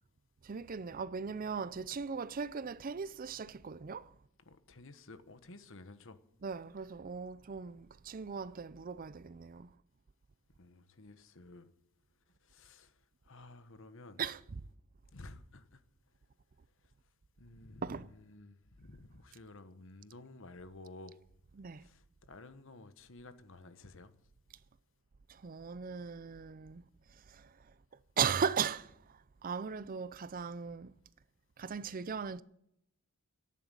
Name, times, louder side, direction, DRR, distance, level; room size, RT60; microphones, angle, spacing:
voice 1, 0.4-4.1 6.4-9.7 14.2-14.6 17.8-18.1 21.5-21.9 25.3-26.8 27.1-27.7 28.2-30.9 31.6-32.4, right 6 dB, 40° right, 0.5 m, -38 dB
voice 2, 4.4-6.2 10.6-11.7 12.4-13.0 13.2-14.2 15.1-15.8 17.4-21.2 21.7-24.1, left 2 dB, 60° left, 1.3 m, -53 dB
13.0 x 10.0 x 9.1 m
head